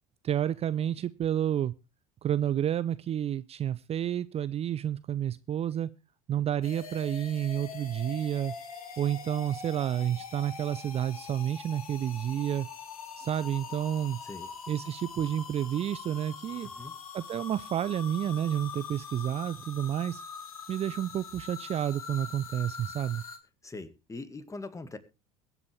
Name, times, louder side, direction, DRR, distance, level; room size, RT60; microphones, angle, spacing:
voice 1, 0.2-1.7 2.2-5.9 6.3-8.5 9.0-12.7 13.2-14.2 14.7-16.7 17.1-20.2 20.7-23.2, right 10 dB, 35° right, 16 dB, 0.6 m, -30 dB
sound 1, 6.6-23.4, left 6 dB, 85° left, 1.9 m, -43 dB
voice 2, 16.6-16.9 23.6-25.0, left 3 dB, 15° left, 12 dB, 2.0 m, -42 dB
22.0 x 8.4 x 3.4 m, 0.30 s
hypercardioid pair, 70°, 18 cm